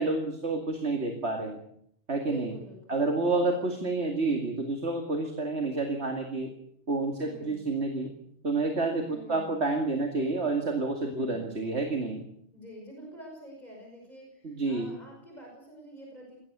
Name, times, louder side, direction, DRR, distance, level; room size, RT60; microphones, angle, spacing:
voice 1, 0.0-1.6 2.1-2.5 2.9-6.5 6.9-8.1 8.4-12.3 14.4-14.9, right 3 dB, 65° right, 3 dB, 2.6 m, -29 dB
voice 2, 2.2-3.0 3.3-3.9 7.2-7.7 9.0-9.6 11.1-11.5 12.5-16.4, equal, 35° left, -1 dB, 5.8 m, -47 dB
20.5 x 17.0 x 8.0 m, 0.70 s
omnidirectional pair, 1.2 m